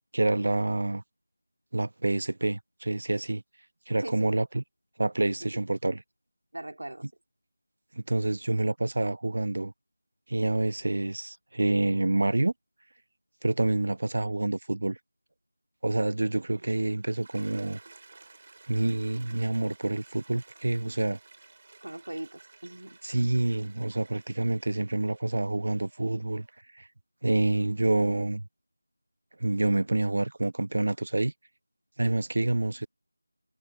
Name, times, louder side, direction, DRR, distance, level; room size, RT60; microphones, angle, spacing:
voice 1, 0.1-1.0 1.7-3.4 3.9-4.6 5.0-6.0 7.9-9.7 10.3-12.5 13.4-15.0 15.8-17.8 18.7-21.2 23.0-26.5 26.7-26.9 27.2-28.4 29.4-31.3 32.0-32.9, right 2 dB, 55° right, 1.1 m, -27 dB
voice 2, 4.0-4.3 6.5-7.1 21.8-23.0 32.0-32.2, right 1 dB, 80° right, 3.4 m, -40 dB
Toilet flush, 16.4-26.6, right 3 dB, 40° right, 4.1 m, -54 dB
figure-of-eight pair, 175°, 0 cm